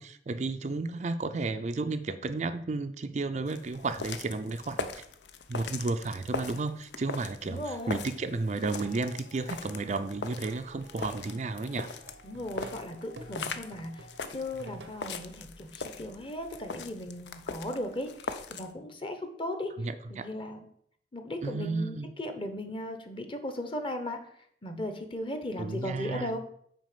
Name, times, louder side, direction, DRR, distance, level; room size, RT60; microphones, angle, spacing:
voice 1, 0.0-5.0 5.5-11.9 19.8-20.3 21.4-22.1 25.6-26.3, right 3 dB, 40° right, 9 dB, 0.4 m, -33 dB
sound 1, 3.5-18.7, left 4 dB, 80° left, 0.6 m, -41 dB
voice 2, 7.4-8.0 12.2-19.7 20.1-20.7 21.1-24.2 24.6-26.4, left 1 dB, 30° left, 7 dB, 0.9 m, -37 dB
Plucked string instrument, 8.6-15.1, right 1 dB, 90° right, 0.8 m, -48 dB
6.3 x 4.6 x 6.7 m, 0.66 s
head